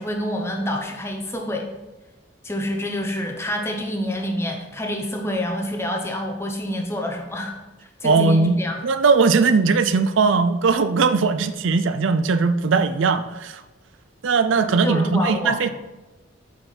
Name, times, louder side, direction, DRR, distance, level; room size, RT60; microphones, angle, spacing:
voice 1, 0.0-1.7 2.4-7.5 7.8-8.8 14.6-15.6, equal, 15° left, 2 dB, 0.9 m, -27 dB
voice 2, 8.0-8.6 8.8-13.6 14.2-15.7, right 4 dB, 75° right, 11 dB, 0.5 m, -19 dB
8.3 x 5.6 x 4.2 m, 1.1 s
head